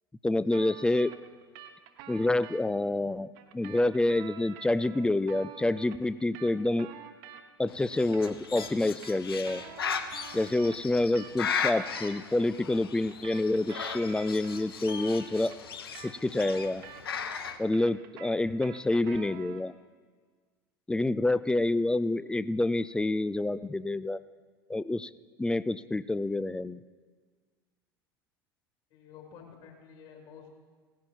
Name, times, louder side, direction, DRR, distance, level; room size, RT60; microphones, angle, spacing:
voice 1, 0.2-1.1 2.1-6.9 7.6-9.6 10.3-15.6 16.0-16.8 17.6-19.7 20.9-24.2 24.7-25.1 25.4-26.8, left 2 dB, 5° left, 15 dB, 0.4 m, -28 dB
sound 1, 0.5-2.6 3.3-7.7 8.0-12.2 12.9-17.3 17.6-19.7, right 10 dB, 55° right, 1.2 m, -48 dB
Bird, 7.7-17.6, left 6 dB, 75° left, 0.8 m, -37 dB
voice 2, 28.9-30.5, left 7 dB, 50° left, 1 dB, 3.5 m, -50 dB
17.5 x 10.5 x 4.5 m, 1.5 s
figure-of-eight pair, 75°, 13 cm